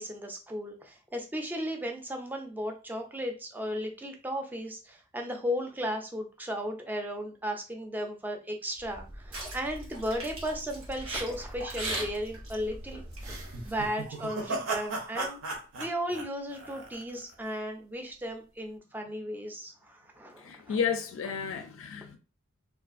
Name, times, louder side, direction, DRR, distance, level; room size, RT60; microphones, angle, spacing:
voice 1, 0.0-13.3 13.6-15.4 15.8-20.8, equal, 10° right, 0.3 m, -35 dB
sound 1, 8.8-13.9, right 1 dB, 85° right, 1.1 m, -39 dB
sound 2, 13.2-17.3, right 2 dB, 70° right, 0.6 m, -36 dB
voice 2, 20.4-22.2, left 6 dB, 70° left, 0.3 m, -32 dB
2.4 x 2.4 x 2.4 m
head